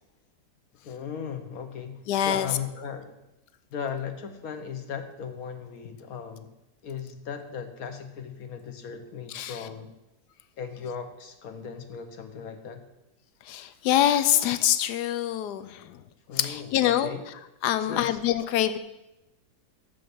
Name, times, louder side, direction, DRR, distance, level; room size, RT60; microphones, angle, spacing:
voice 1, 0.8-3.2 3.7-6.5 6.8-9.9 10.6-12.8 16.3-17.2 17.8-18.2, left 7 dB, 65° left, 7 dB, 1.3 m, -37 dB
voice 2, 2.1-2.5 9.3-9.6 13.4-16.0 16.3-17.1 17.6-18.8, left 11 dB, 90° left, 12 dB, 1.2 m, -25 dB
7.3 x 6.9 x 6.9 m, 0.95 s
omnidirectional pair, 1.7 m